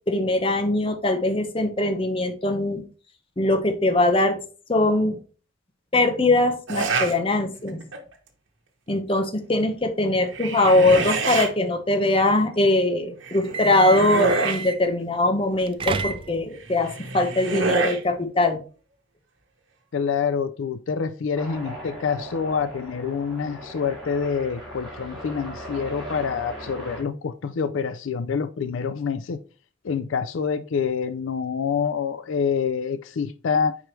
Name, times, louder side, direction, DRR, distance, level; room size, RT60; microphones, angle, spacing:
voice 1, 0.1-2.8 3.4-4.4 4.7-5.1 5.9-7.8 8.9-18.6, left 2 dB, 25° left, 0.9 m, -21 dB
sound 1, 6.7-7.2 7.7-8.1 10.1-11.5 13.2-14.7 16.6-18.0, right 3 dB, 75° right, 1.3 m, -27 dB
sound 2, 13.4-14.9 15.5-16.6, right 4 dB, 25° right, 0.3 m, -30 dB
voice 2, 19.9-29.4 29.8-33.8, left 6 dB, 75° left, 0.4 m, -26 dB
sound 3, 21.3-27.0, equal, ahead, 2.9 m, -38 dB
5.0 x 4.6 x 4.4 m
head